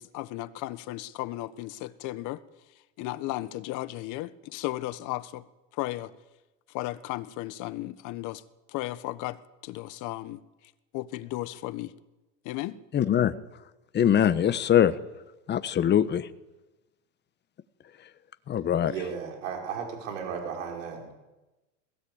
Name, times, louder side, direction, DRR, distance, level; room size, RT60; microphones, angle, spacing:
voice 1, 0.0-2.4 3.0-5.4 5.7-6.1 6.7-8.4 8.7-10.4 10.9-11.9 12.4-12.8, left 17 dB, 50° left, 14 dB, 1.4 m, -35 dB
voice 2, 12.9-13.3 13.9-14.9 15.5-16.3 18.5-18.9, left 10 dB, 25° left, 13 dB, 1.3 m, -22 dB
voice 3, 18.8-21.1, right 6 dB, 80° right, 2 dB, 5.4 m, -35 dB
21.0 x 16.5 x 8.8 m, 1.1 s
supercardioid pair, 115°, 38 cm